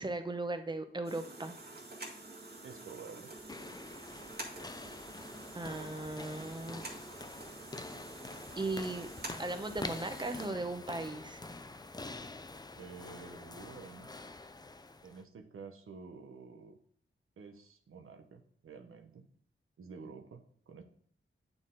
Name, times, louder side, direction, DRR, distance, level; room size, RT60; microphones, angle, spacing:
voice 1, 0.0-1.6 5.5-6.8 8.6-9.1 9.4-11.4, right 2 dB, 20° right, 8 dB, 0.8 m, -37 dB
sound 1, 1.0-10.5, right 2 dB, 50° right, 1.8 m, -48 dB
voice 2, 2.6-3.3 12.8-14.1 15.0-16.8 17.4-19.3 19.8-20.8, right 5 dB, 90° right, 4 dB, 0.8 m, -50 dB
sound 2, 3.3-15.2, left 3 dB, 20° left, 0.4 m, -46 dB
8.9 x 3.9 x 3.8 m, 0.64 s
wide cardioid pair, 90°, 21 cm